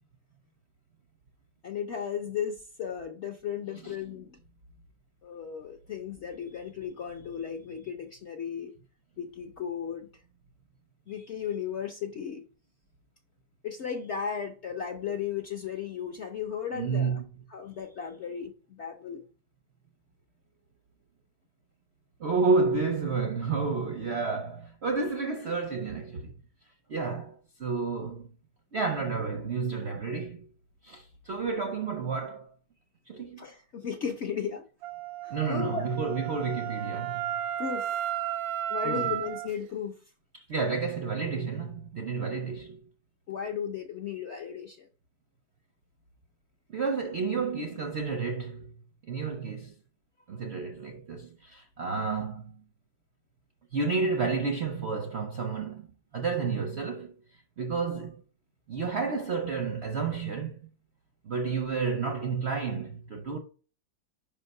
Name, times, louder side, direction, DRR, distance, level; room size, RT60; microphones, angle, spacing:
voice 1, 1.6-4.4 5.2-8.7 9.2-10.1 11.1-12.4 13.6-17.2 17.5-19.2 33.4-34.6 35.2-35.9 37.6-38.0 38.7-40.0 43.3-44.9, left 7 dB, 60° left, 0.7 m, -35 dB
voice 2, 16.7-17.2 22.2-26.3 26.9-28.3 28.7-30.5 30.8-32.5 33.1-33.5 35.3-37.3 38.8-39.1 40.3-42.8 46.7-48.7 49.1-49.7 50.3-52.6 53.7-55.9 56.1-57.1 57.6-58.2 58.7-60.6 61.2-63.4, right 4 dB, 65° right, 0.6 m, -30 dB
Wind instrument woodwind instrument, 34.8-39.5, right 11 dB, 90° right, 1.4 m, -33 dB
5.6 x 3.7 x 5.3 m
omnidirectional pair, 2.0 m